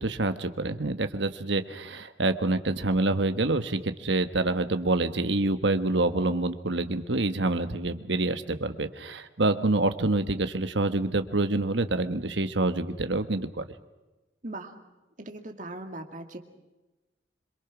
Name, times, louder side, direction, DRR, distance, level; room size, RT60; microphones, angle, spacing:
voice 1, 0.0-13.6, right 2 dB, 70° right, 9 dB, 1.4 m, -27 dB
voice 2, 14.4-14.8 15.2-16.4, right 2 dB, 40° right, 5 dB, 2.3 m, -39 dB
26.5 x 23.0 x 6.1 m, 1.1 s
head